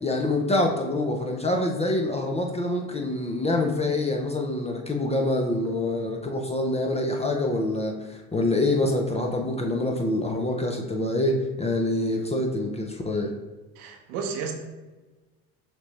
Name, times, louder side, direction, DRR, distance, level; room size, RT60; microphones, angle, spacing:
voice 1, 0.0-13.3, left 2 dB, 15° left, 2 dB, 0.6 m, -26 dB
voice 2, 13.8-14.5, right 6 dB, 70° right, 3 dB, 1.0 m, -32 dB
6.0 x 2.8 x 3.2 m, 1.2 s
hypercardioid pair, 75°, 45 cm